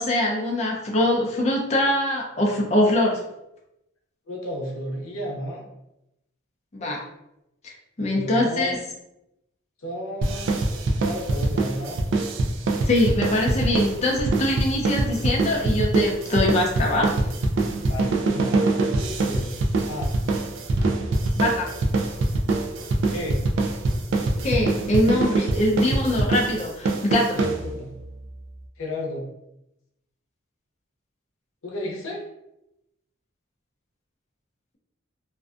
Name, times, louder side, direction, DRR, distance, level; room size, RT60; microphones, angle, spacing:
voice 1, 0.0-3.2 6.7-7.0 7.6-7.7 8.0-8.8 12.9-17.1 21.4-21.7 24.4-27.4, left 1 dB, 35° left, -1 dB, 0.4 m, -23 dB
voice 2, 4.3-5.6 8.0-8.8 9.8-10.6 11.0-12.0 17.9-19.6 19.9-20.1 23.0-23.4 27.4-27.9 28.8-29.2 31.6-32.2, left 1 dB, 90° left, -1 dB, 0.6 m, -32 dB
sound 1, 10.2-28.0, right 2 dB, 70° right, 0.3 m, -24 dB
2.5 x 2.1 x 2.4 m, 0.87 s
head